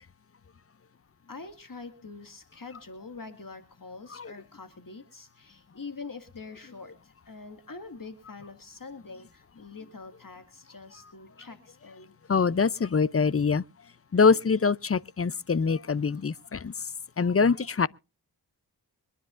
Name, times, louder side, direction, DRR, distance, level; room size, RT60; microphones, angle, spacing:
voice 1, 1.3-12.1, left 4 dB, 50° left, 2.1 m, -44 dB
voice 2, 12.3-13.6 14.1-16.7 17.2-17.9, left 5 dB, 35° left, 0.6 m, -24 dB
25.0 x 10.0 x 2.5 m
cardioid pair, 45°, 43 cm